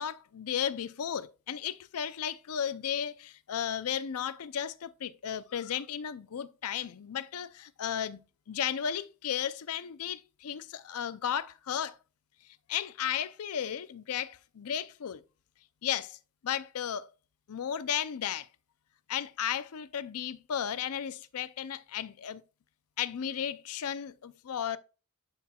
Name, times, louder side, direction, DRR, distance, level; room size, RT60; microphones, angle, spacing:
voice 1, 0.0-8.2 8.5-12.0 12.7-15.2 15.8-16.2 16.4-17.1 17.5-18.5 19.1-22.4 23.0-24.8, left 9 dB, 75° left, 0.5 m, -34 dB
11.0 x 4.3 x 2.3 m
head